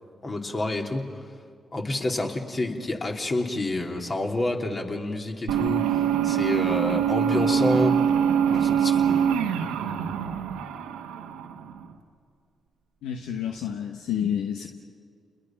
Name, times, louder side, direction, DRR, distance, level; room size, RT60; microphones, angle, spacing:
voice 1, 0.2-1.3 1.7-8.0 8.5-9.2, left 2 dB, 40° left, 2 dB, 3.1 m, -28 dB
sound 1, 5.5-11.9, right 8 dB, 90° right, 1.2 m, -24 dB
voice 2, 13.0-14.7, left 9 dB, 80° left, 4 dB, 1.0 m, -29 dB
29.5 x 21.5 x 5.9 m, 2.2 s
hypercardioid pair, 45°, 0 cm